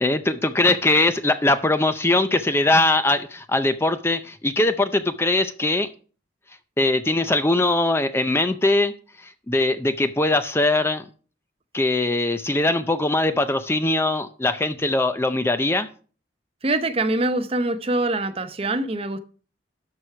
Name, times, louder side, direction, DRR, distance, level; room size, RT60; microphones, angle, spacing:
voice 1, 0.0-5.9 6.8-8.9 9.2-11.0 11.7-15.9, left 2 dB, 15° left, 0.5 m, -21 dB
voice 2, 16.6-19.2, right 2 dB, 30° right, 0.7 m, -24 dB
12.5 x 4.7 x 5.7 m
head